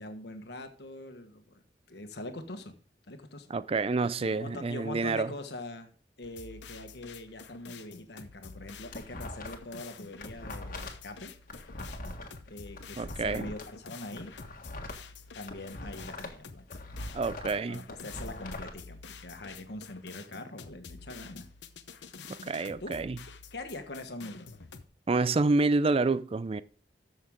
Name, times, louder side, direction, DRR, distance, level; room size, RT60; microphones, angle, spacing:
voice 1, 0.0-1.6 1.9-2.7 3.1-3.5 4.2-5.9 6.2-11.3 12.5-14.3 15.3-16.8 17.7-21.5 22.8-23.0 23.5-24.7, left 2 dB, 70° left, 1.4 m, -43 dB
voice 2, 3.5-5.3 13.0-13.5 17.1-17.8 22.4-23.2 25.1-26.6, right 3 dB, 35° right, 0.4 m, -28 dB
sound 1, 6.2-24.8, left 5 dB, 85° left, 0.9 m, -49 dB
sound 2, 8.5-9.8 10.1-13.6 14.1-16.4 16.7-18.7, left 1 dB, 50° left, 1.7 m, -42 dB
13.5 x 6.4 x 3.7 m
head